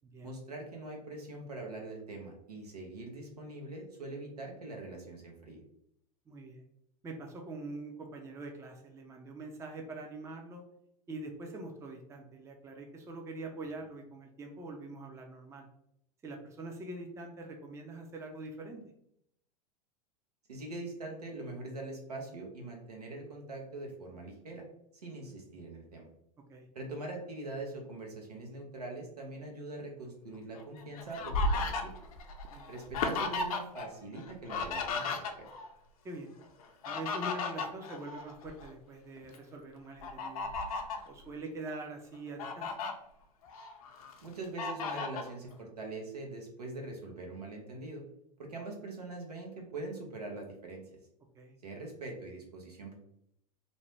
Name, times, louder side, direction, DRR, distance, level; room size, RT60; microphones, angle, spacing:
voice 1, 0.2-5.6 20.5-24.6 24.9-26.1 26.7-31.9 32.7-35.5 44.2-48.0 48.4-50.8 51.6-52.9, right 2 dB, 90° right, 1 dB, 0.8 m, -43 dB
voice 2, 6.3-6.7 7.0-10.6 11.1-15.7 16.2-18.8 26.5-26.7 32.5-32.7 36.0-36.3 36.9-40.5 41.0-42.7 51.4-51.6, right 2 dB, 15° right, 2 dB, 0.4 m, -44 dB
Fowl, 30.5-33.9 34.1-35.7 36.6-38.7 39.2-39.4 40.0-41.1 41.7-41.8 42.1-42.9 43.4-44.1 44.6-45.3, left 3 dB, 65° left, 0.5 m, -35 dB
2.6 x 2.1 x 3.1 m, 0.74 s
hypercardioid pair, 90°, 19 cm